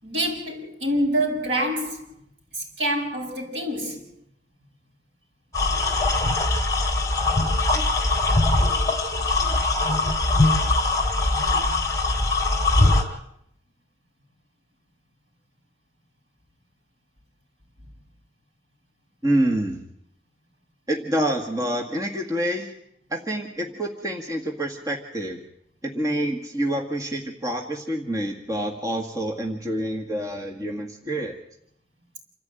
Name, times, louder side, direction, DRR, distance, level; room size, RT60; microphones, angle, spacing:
voice 1, 0.0-2.1 2.5-4.1, right 1 dB, 75° right, 7.5 m, -26 dB
sound 1, 5.5-13.0, left 2 dB, 20° left, 3.4 m, -21 dB
voice 2, 19.2-19.8 20.9-22.7 23.1-25.4 25.8-31.4, right 1 dB, 20° right, 1.8 m, -27 dB
28.0 x 14.5 x 9.1 m
head